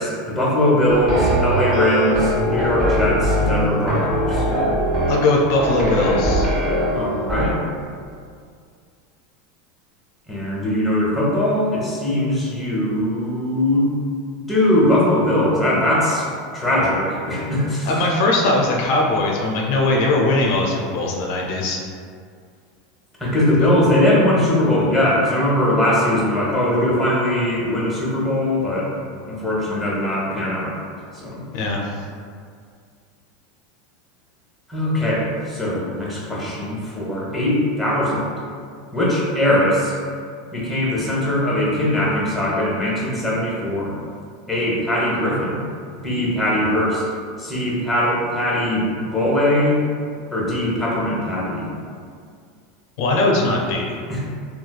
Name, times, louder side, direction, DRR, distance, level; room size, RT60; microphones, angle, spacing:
voice 1, 0.0-4.5 6.9-7.6 10.3-13.9 14.5-16.3 16.5-17.9 23.2-28.9 29.3-30.8 31.1-31.4 34.7-38.4 38.9-39.9 40.5-44.0 44.5-45.6 46.0-47.0 47.4-49.8 50.3-51.7 54.1-54.3, left 1 dB, ahead, -6 dB, 0.8 m, -20 dB
sound 1, 0.9-7.5, equal, 30° right, 1.3 m, -21 dB
voice 2, 5.1-6.5 17.9-21.8 23.6-23.7 31.5-31.8 53.0-54.0, left 2 dB, 65° left, -1 dB, 0.4 m, -20 dB
3.1 x 2.2 x 2.3 m, 2.2 s
supercardioid pair, 115°, 0 cm